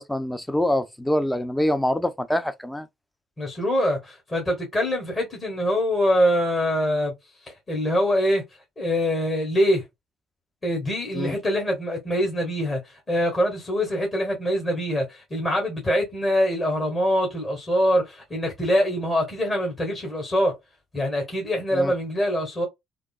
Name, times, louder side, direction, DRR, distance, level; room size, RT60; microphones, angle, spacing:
voice 1, 0.0-2.9 11.1-11.4 21.7-21.9, left 1 dB, 10° left, 0.5 m, -25 dB
voice 2, 3.4-7.1 7.4-8.4 8.8-9.8 10.6-20.6 20.9-22.7, equal, 25° left, 1.4 m, -24 dB
3.5 x 2.0 x 2.3 m
hypercardioid pair, 55°, 0 cm